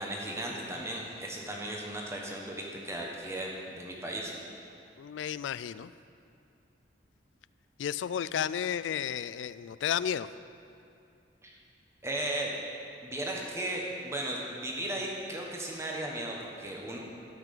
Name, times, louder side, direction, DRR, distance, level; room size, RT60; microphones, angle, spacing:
voice 1, 0.0-4.3 11.4-11.6 12.0-12.5 13.0-17.0, right 1 dB, 15° right, -1 dB, 1.3 m, -36 dB
voice 2, 5.0-5.9 7.8-10.3, left 9 dB, 80° left, 16 dB, 0.3 m, -32 dB
12.5 x 6.0 x 6.7 m, 2.6 s
head